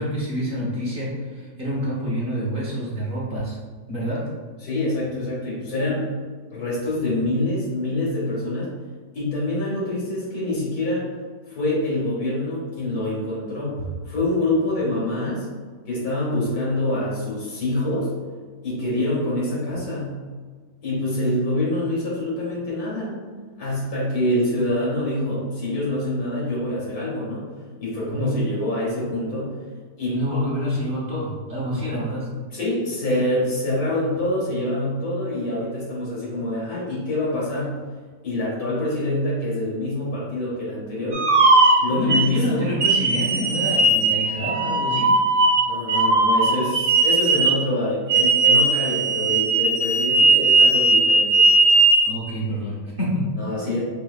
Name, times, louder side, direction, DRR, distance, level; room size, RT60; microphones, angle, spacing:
voice 1, 0.0-3.6 3.9-4.3 28.1-28.4 30.1-32.3 41.9-45.1 52.1-53.3, equal, 40° right, -6 dB, 1.0 m, -27 dB
voice 2, 4.6-6.1 6.5-8.7 9.1-11.1 11.5-15.5 15.9-18.1 18.6-20.1 20.8-23.2 23.6-27.5 27.8-29.6 30.0-30.2 32.5-37.7 38.2-41.3 41.8-42.7 45.7-51.4 53.4-53.8, left 1 dB, 65° left, -7 dB, 2.2 m, -25 dB
sound 1, 41.1-42.3 42.8-47.6 48.1-52.1, right 3 dB, 60° right, 0.8 m, -18 dB
4.6 x 3.7 x 2.3 m, 1.5 s
omnidirectional pair, 1.7 m